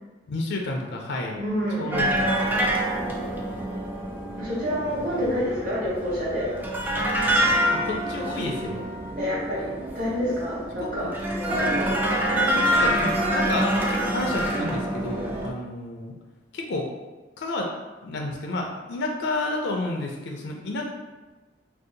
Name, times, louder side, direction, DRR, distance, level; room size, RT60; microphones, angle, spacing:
voice 1, 0.3-1.4 1.8-2.8 7.7-8.8 10.8-11.1 11.5-12.0 12.3-16.1 16.5-16.9 17.4-17.7 18.0-20.9, left 2 dB, 65° left, 1 dB, 0.4 m, -31 dB
voice 2, 1.3-2.0 4.3-6.5 9.2-11.1, equal, 50° right, -7 dB, 1.1 m, -28 dB
sound 1, 1.9-15.5, right 1 dB, 10° right, 0.3 m, -26 dB
2.7 x 2.0 x 3.8 m, 1.2 s
head